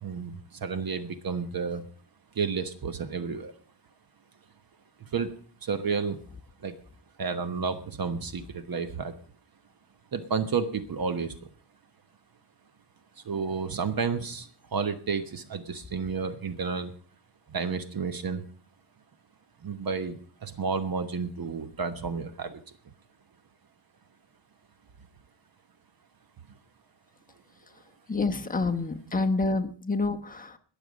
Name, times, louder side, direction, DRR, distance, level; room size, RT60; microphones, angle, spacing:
voice 1, 0.0-1.9 2.3-3.5 5.0-5.3 5.6-6.2 6.6-6.7 7.2-9.1 10.1-11.5 13.2-16.9 17.5-18.4 19.6-22.6 26.5-26.6, right 5 dB, 50° right, 11 dB, 1.2 m, -31 dB
voice 2, 28.1-30.6, left 3 dB, 20° left, 4 dB, 1.1 m, -28 dB
20.5 x 7.1 x 5.2 m, 0.43 s
wide cardioid pair, 145°, 45 cm